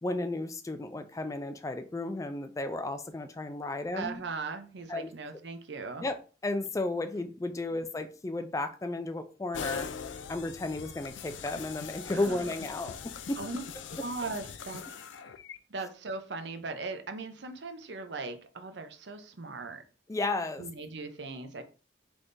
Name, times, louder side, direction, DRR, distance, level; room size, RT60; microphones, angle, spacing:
voice 1, 0.0-4.2 4.9-5.1 6.0-6.1 6.4-13.0 13.3-13.4 20.1-20.7, left 2 dB, 15° left, 0.3 m, -33 dB
voice 2, 3.9-6.1 12.1-12.5 13.4-13.6 13.9-15.1 15.7-19.8 20.6-21.6, right 3 dB, 70° right, 0.7 m, -39 dB
sound 1, 9.5-15.6, left 6 dB, 90° left, 0.4 m, -41 dB
3.5 x 3.3 x 3.9 m
head